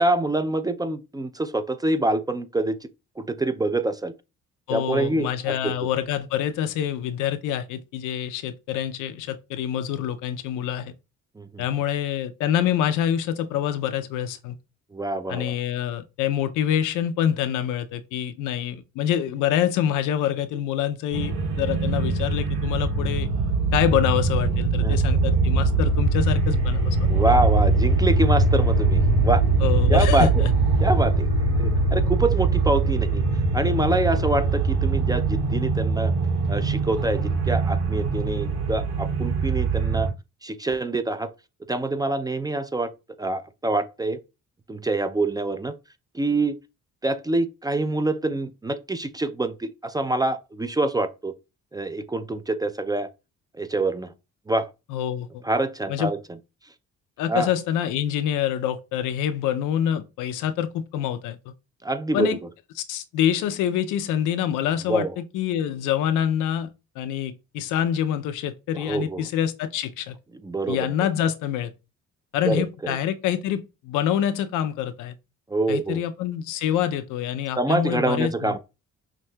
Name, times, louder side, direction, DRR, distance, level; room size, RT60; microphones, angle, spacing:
voice 1, 0.0-2.8 3.2-4.1 4.7-5.7 11.4-11.6 14.9-15.6 24.8-25.0 27.1-29.4 29.9-30.3 30.8-31.3 31.6-33.2 33.5-36.1 36.5-40.1 40.4-41.3 41.7-42.9 43.2-44.2 44.7-45.8 46.1-46.6 47.0-51.3 51.7-53.1 53.6-54.1 54.5-54.7 55.4-56.2 57.3-57.5 61.8-62.3 64.9-65.1 68.7-69.3 70.4-71.1 72.4-73.0 75.5-76.0 77.6-78.6, right 2 dB, 15° right, 0.3 m, -25 dB
voice 2, 4.7-10.9 11.6-14.6 15.3-23.3 23.7-27.1 29.6-30.5 54.9-55.4 55.9-56.1 57.2-61.5 62.1-62.4 62.8-70.2 70.7-71.7 72.3-75.1 75.7-78.5, left 10 dB, 90° left, 0.5 m, -26 dB
sound 1, 21.1-40.1, right 3 dB, 90° right, 2.0 m, -22 dB
5.8 x 2.6 x 2.2 m
cardioid pair, 90°, 30 cm